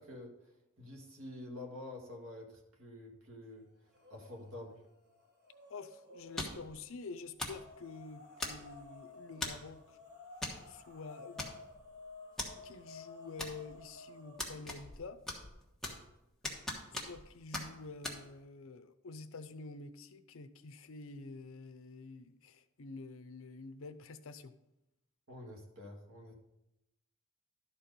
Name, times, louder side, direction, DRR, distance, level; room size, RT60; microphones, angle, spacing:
voice 1, 0.0-3.7 4.1-4.8 25.3-26.3, left 1 dB, 75° right, 2 dB, 1.7 m, -48 dB
sound 1, 3.9-4.5 4.8-6.7 7.4-14.6, left 3 dB, 50° right, 2.4 m, -54 dB
voice 2, 5.7-10.0 10.7-11.5 12.6-15.2 16.9-24.5, left 3 dB, 65° left, 12 dB, 0.6 m, -48 dB
sound 2, 6.4-6.7 7.4-7.7 8.4-8.8 9.4-9.7 10.4-10.6 10.9-11.0 11.4-11.9 12.4-12.5 13.4-13.9 14.4-15.0 15.3-16.1 16.4-17.3 17.5-17.7 18.0-18.2, left 2 dB, ahead, 1.2 m, -40 dB
11.5 x 4.4 x 5.2 m, 0.90 s
head